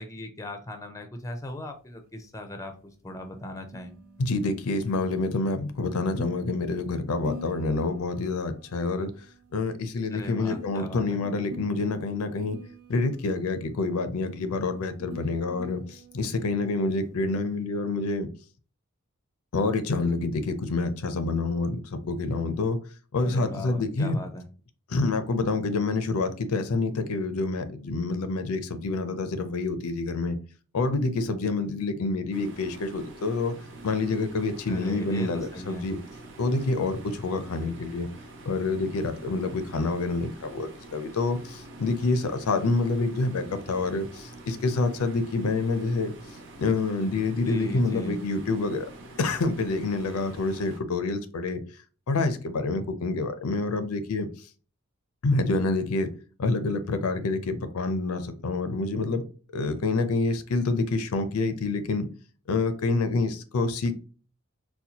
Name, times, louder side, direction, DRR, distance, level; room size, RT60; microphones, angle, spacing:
voice 1, 0.0-3.9 10.1-11.2 23.2-24.4 34.7-35.9 47.5-48.2, left 1 dB, 15° left, 0.4 m, -38 dB
sound 1, 1.5-17.6, equal, 80° right, 1.1 m, -48 dB
voice 2, 4.2-9.1 9.5-12.6 12.9-18.3 19.5-22.8 23.1-24.2 24.9-30.4 30.7-33.6 33.8-36.0 36.4-38.1 38.5-46.1 46.6-48.9 49.2-51.6 52.1-54.3 55.2-56.1 56.4-59.3 59.5-62.1 62.5-63.9, left 3 dB, 85° left, 0.5 m, -27 dB
sound 2, 32.3-50.8, right 2 dB, 55° right, 0.7 m, -46 dB
4.1 x 2.2 x 2.8 m
head